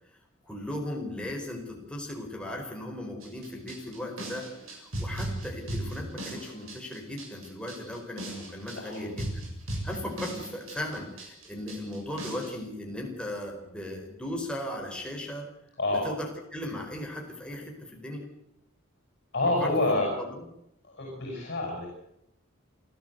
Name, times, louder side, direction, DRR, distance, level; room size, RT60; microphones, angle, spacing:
voice 1, 0.4-9.5 9.8-15.5 15.9-18.3 19.6-20.4, left 1 dB, 5° left, 1 dB, 4.7 m, -37 dB
sound 1, 3.2-12.5, right 1 dB, 85° right, 7.7 m, -37 dB
voice 2, 8.8-9.1 15.8-16.1 19.3-20.1 20.8-21.9, left 2 dB, 55° left, -1 dB, 7.6 m, -28 dB
28.0 x 13.5 x 8.1 m, 0.80 s
head